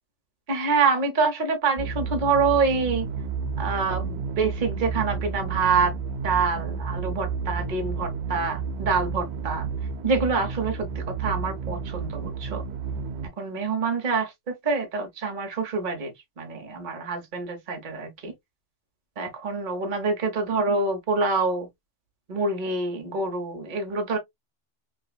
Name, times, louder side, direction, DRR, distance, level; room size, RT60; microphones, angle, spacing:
voice 1, 0.5-3.1 3.6-5.9 6.2-9.7 10.0-12.6 13.4-16.1 16.4-18.3 19.2-21.7 22.3-24.2, right 4 dB, 40° right, 1.2 m, -26 dB
sound 1, 1.8-13.3, right 5 dB, 85° right, 0.4 m, -31 dB
5.9 x 2.3 x 2.3 m
omnidirectional pair, 1.3 m